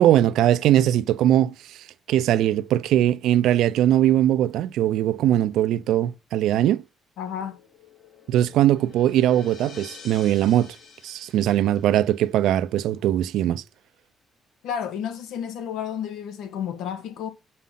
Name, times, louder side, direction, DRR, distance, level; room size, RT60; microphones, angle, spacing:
voice 1, 0.0-1.5 2.1-6.8 8.3-10.7 11.0-13.6, right 12 dB, 85° right, 0.6 m, -20 dB
voice 2, 7.2-7.6 14.6-17.3, left 8 dB, 90° left, 1.7 m, -31 dB
sound 1, 7.2-12.4, left 6 dB, 70° left, 3.1 m, -47 dB
7.4 x 5.6 x 5.8 m
cardioid pair, 90°, 0 cm